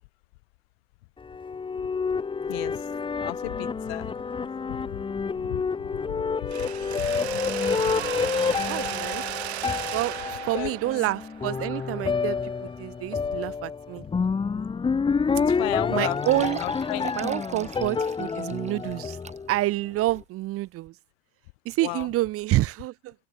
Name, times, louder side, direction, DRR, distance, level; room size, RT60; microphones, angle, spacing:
sound 1, 1.2-19.8, left 5 dB, 15° left, 1.3 m, -29 dB
voice 1, 2.5-2.8 3.2-4.1 4.7-5.0 5.4-6.7 7.0-7.4 7.7-8.1 8.6-8.7 10.5-10.7 15.4-16.2 16.6-17.1 21.8-22.1, left 27 dB, 65° left, 6.8 m, -35 dB
Mechanisms, 6.5-12.4, right 14 dB, 90° right, 1.1 m, -35 dB
voice 2, 8.6-9.2 9.9-14.0 15.9-16.6 17.1-19.2 19.5-20.9 21.6-23.1, right 17 dB, 45° right, 1.3 m, -28 dB
sound 2, 15.2-15.3 15.6-15.7 16.1-19.7 20.2-20.3 20.9-21.0, right 6 dB, 20° right, 2.7 m, -42 dB
hypercardioid pair, 105°, 32 cm